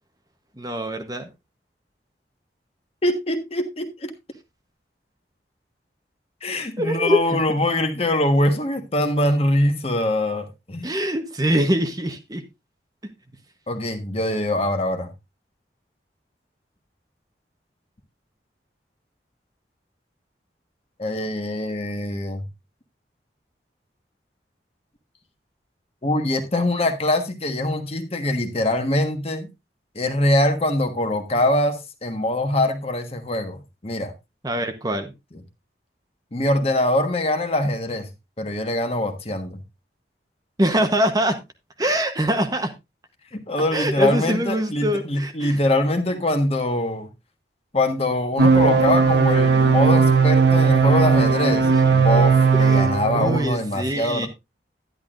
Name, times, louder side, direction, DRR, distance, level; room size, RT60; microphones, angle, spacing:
voice 1, 0.6-1.3 6.8-7.4 10.8-12.4 34.4-35.1 40.6-41.4 41.8-42.7 43.7-45.6 51.6-51.9 52.5-54.3, equal, 20° right, 1.0 m, -24 dB
voice 2, 3.0-4.1 6.4-10.9 13.7-15.1 21.0-22.4 26.0-29.5 29.9-34.1 36.3-38.1 38.4-39.6 43.3-47.1 47.7-54.3, left 1 dB, 35° left, 1.3 m, -23 dB
sound 1, 48.4-53.4, right 5 dB, 80° right, 1.1 m, -17 dB
10.5 x 10.5 x 2.5 m
head